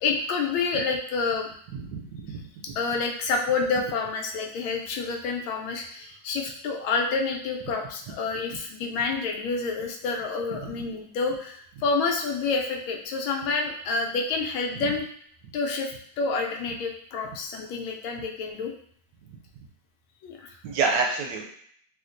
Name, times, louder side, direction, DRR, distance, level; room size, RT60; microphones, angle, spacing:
voice 1, 0.0-1.5 2.8-15.1 15.5-18.7 20.2-20.6, left 4 dB, 85° left, 2 dB, 1.4 m, -28 dB
voice 2, 1.7-2.4 6.0-6.1 14.7-14.8 20.6-21.5, right 4 dB, 75° right, 0 dB, 1.1 m, -28 dB
3.5 x 2.7 x 2.5 m, 0.63 s
omnidirectional pair, 2.1 m